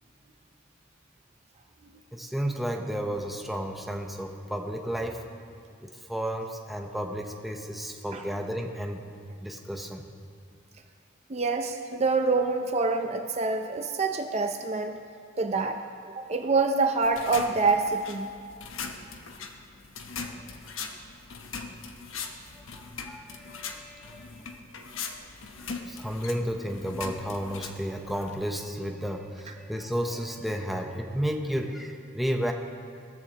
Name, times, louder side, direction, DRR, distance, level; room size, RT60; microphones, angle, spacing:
voice 1, 2.1-5.2 5.8-9.0 9.4-10.0 20.3-20.5 22.5-24.6 25.6-32.5, equal, ahead, 2 dB, 0.7 m, -32 dB
voice 2, 11.3-15.0 15.4-15.8 16.2-18.3, right 3 dB, 35° right, 5 dB, 0.5 m, -26 dB
sound 1, 17.0-28.5, left 5 dB, 85° left, 1.0 m, -40 dB
17.0 x 14.0 x 2.9 m, 2.4 s
head